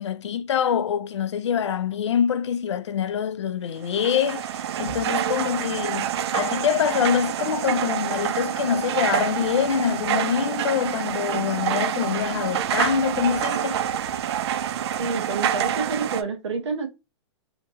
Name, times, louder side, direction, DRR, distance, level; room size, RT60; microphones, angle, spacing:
voice 1, 0.0-4.5 4.8-13.8, left 8 dB, 85° left, 0.4 m, -25 dB
sound 1, 3.8-16.2, right 9 dB, 70° right, 0.4 m, -27 dB
voice 2, 15.0-16.9, right 4 dB, 85° right, 1.0 m, -28 dB
2.8 x 2.7 x 2.7 m
hypercardioid pair, 125°, 14 cm